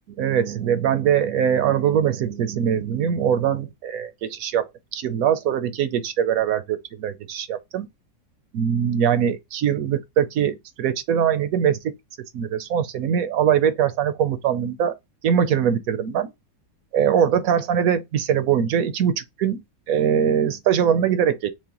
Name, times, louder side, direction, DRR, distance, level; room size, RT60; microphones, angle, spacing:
voice 1, 0.2-7.9 8.5-11.9 12.3-15.0 15.2-16.3 16.9-21.5, right 8 dB, 70° right, 0.9 m, -22 dB
6.0 x 2.1 x 2.9 m
omnidirectional pair, 1.7 m